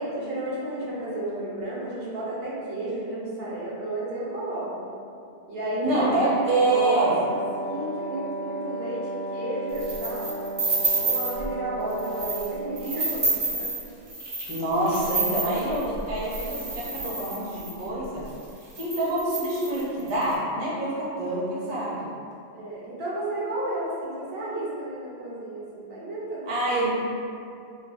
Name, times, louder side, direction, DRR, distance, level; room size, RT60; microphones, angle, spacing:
voice 1, 0.0-4.9 5.5-10.5 10.9-13.7 22.5-26.9, right 1 dB, 65° right, -7 dB, 0.9 m, -32 dB
voice 2, 5.8-7.1 14.5-18.2 18.6-22.1 26.5-26.9, right 2 dB, 35° right, -8 dB, 0.5 m, -26 dB
Wind instrument woodwind instrument, 6.1-12.9, right 1 dB, 80° left, 0.9 m, -34 dB
sound 1, 9.7-11.4 11.9-12.5 12.8-17.8 18.4-18.5 18.7-20.2, right 3 dB, 90° right, 1.0 m, -29 dB
3.2 x 2.2 x 2.4 m, 2.5 s
omnidirectional pair, 1.1 m